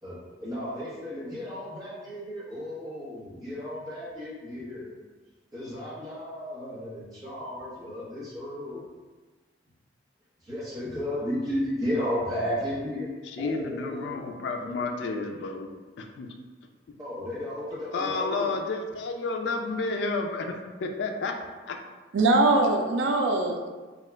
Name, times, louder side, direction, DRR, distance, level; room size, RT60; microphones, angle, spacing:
voice 1, 0.0-4.9 5.5-8.8 10.4-13.1 13.3-14.8 17.0-18.5, left 1 dB, 20° right, -8 dB, 0.9 m, -34 dB
voice 2, 13.3-15.7 16.0-16.3 17.9-21.3 21.7-21.8, left 3 dB, 70° left, 4 dB, 0.3 m, -31 dB
voice 3, 22.1-23.7, right 2 dB, 90° right, 4 dB, 0.4 m, -22 dB
2.8 x 2.3 x 3.2 m, 1.3 s
head